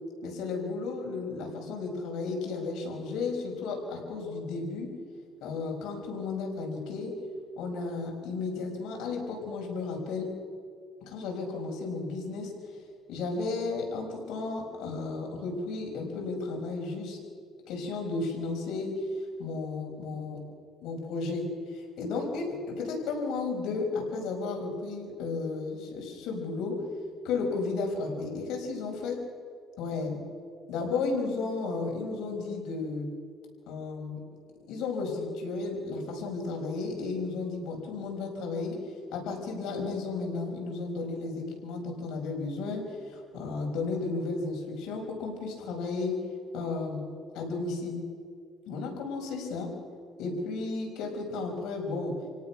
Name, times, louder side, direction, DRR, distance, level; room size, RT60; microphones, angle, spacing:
voice 1, 0.2-4.9 5.4-7.1 7.6-10.3 11.0-12.5 13.1-17.2 17.7-18.9 19.4-20.4 20.8-21.5 21.7-26.8 27.2-29.2 29.8-30.2 30.7-33.1 33.7-34.2 34.7-38.8 39.1-46.1 46.5-47.0 47.3-48.0 48.7-49.7 50.2-52.1, left 3 dB, 80° left, 0 dB, 5.9 m, -33 dB
29.0 x 17.5 x 6.1 m, 2.2 s
cardioid pair, 125°, 0 cm